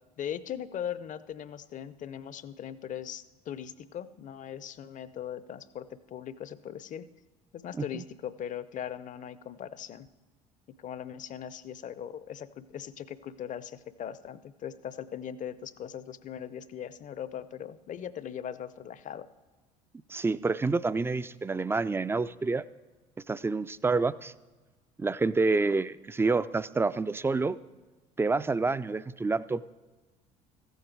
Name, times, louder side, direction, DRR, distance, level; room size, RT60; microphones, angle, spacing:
voice 1, 0.2-7.1 7.5-10.1 10.8-19.3, left 9 dB, 40° left, 16 dB, 0.6 m, -39 dB
voice 2, 20.1-22.6 23.3-24.3 25.0-27.6 28.2-29.8, right 3 dB, 10° right, 17 dB, 0.3 m, -28 dB
14.5 x 8.0 x 4.6 m, 1.2 s
hypercardioid pair, 60°, 20 cm